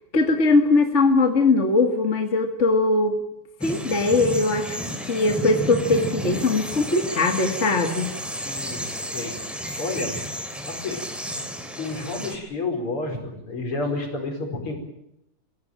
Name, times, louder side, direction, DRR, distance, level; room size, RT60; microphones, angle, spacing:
voice 1, 0.1-3.2 3.6-4.8 5.1-8.1, left 3 dB, 30° left, 5 dB, 1.8 m, -20 dB
sound 1, 3.6-12.4, equal, ahead, 3.2 m, -32 dB
voice 2, 8.4-9.4 9.8-10.2 10.7-11.1 11.8-14.8, left 3 dB, 45° left, 4 dB, 5.5 m, -30 dB
25.5 x 16.5 x 8.9 m, 0.80 s
omnidirectional pair, 3.4 m